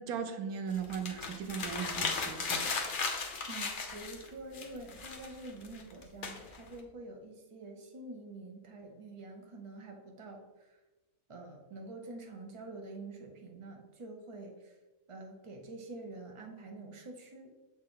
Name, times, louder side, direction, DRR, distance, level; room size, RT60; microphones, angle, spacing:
voice 1, 0.1-2.7, right 7 dB, 90° right, 7 dB, 1.2 m, -38 dB
sound 1, 0.7-4.3 4.5-6.8, left 4 dB, 45° left, 0.8 m, -36 dB
voice 2, 3.5-10.8 11.3-14.7 15.1-17.6, right 2 dB, 25° right, 2 dB, 0.8 m, -47 dB
7.4 x 4.3 x 3.8 m, 1.1 s
omnidirectional pair, 1.5 m